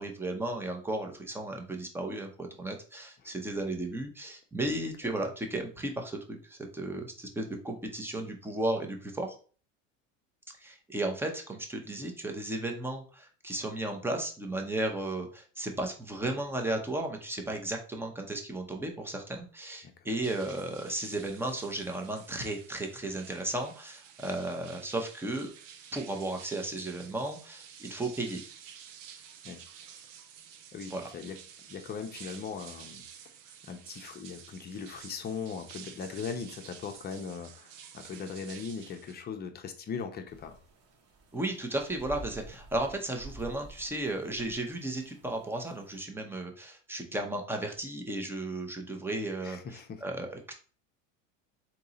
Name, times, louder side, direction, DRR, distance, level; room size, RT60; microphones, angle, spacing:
voice 1, 0.0-9.3 10.6-25.5 25.9-28.4 30.9-31.1 41.3-50.5, right 1 dB, 5° right, 3 dB, 0.8 m, -34 dB
sound 1, 20.2-39.1, right 8 dB, 85° right, 0.8 m, -50 dB
voice 2, 29.4-29.9 30.7-31.4 31.7-33.0 33.6-40.6 49.4-50.0, left 6 dB, 25° left, 6 dB, 0.7 m, -39 dB
sound 2, 40.3-46.0, right 3 dB, 40° right, 1.2 m, -50 dB
3.7 x 2.9 x 4.0 m, 0.40 s
supercardioid pair, 115°, 37 cm